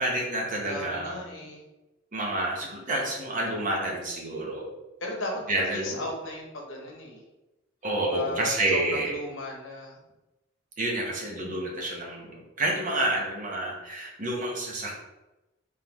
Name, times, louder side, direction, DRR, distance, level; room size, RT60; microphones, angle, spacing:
voice 1, 0.0-1.4 2.1-4.7 5.5-6.0 7.8-9.1 10.8-14.9, right 1 dB, 40° right, -1 dB, 0.9 m, -29 dB
voice 2, 0.7-1.6 5.0-7.2 8.1-10.0, left 1 dB, 75° left, 0 dB, 1.0 m, -36 dB
3.7 x 3.6 x 3.0 m, 1.0 s
head